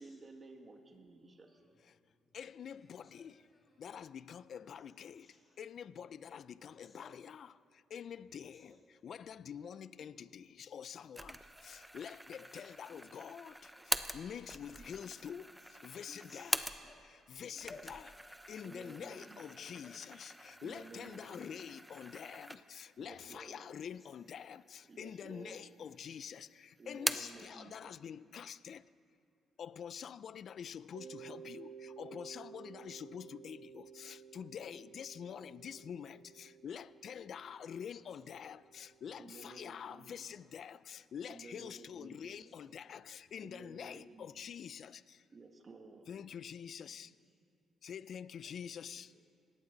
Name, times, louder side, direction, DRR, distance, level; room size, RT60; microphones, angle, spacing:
voice 1, 0.0-1.6 18.6-19.6 20.6-21.6 23.0-23.7 24.8-25.8 26.8-27.9 39.2-40.1 41.3-42.4 43.4-44.4 45.3-46.1, right 3 dB, 35° right, 4 dB, 1.9 m, -54 dB
voice 2, 1.4-1.7 2.7-4.1 4.7-5.6 6.7-7.2 8.5-8.8 10.0-10.2 10.9-11.1 12.9-13.1 15.1-15.7 16.1-18.0 19.6-20.1 22.0-22.3 24.0-24.2 25.8-26.0 35.7-35.8 38.0-38.3 40.0-40.5 42.3-42.7 44.4-44.5 46.9-47.0 48.4-49.3, left 3 dB, 40° left, -1 dB, 1.9 m, -61 dB
voice 3, 2.3-3.5 3.8-16.6 17.0-28.9 29.6-45.2 46.1-47.1 47.8-49.1, left 8 dB, 60° left, 17 dB, 0.4 m, -47 dB
sound 1, 11.1-17.1 17.5-22.9 23.4-23.5 24.3-25.0 25.3-26.0 26.3-27.4, right 1 dB, 5° right, 0.7 m, -43 dB
Mallet percussion, 30.9-39.5, right 7 dB, 85° right, 1.1 m, -54 dB
20.0 x 17.0 x 4.0 m, 2.4 s
cardioid pair, 90°, 0 cm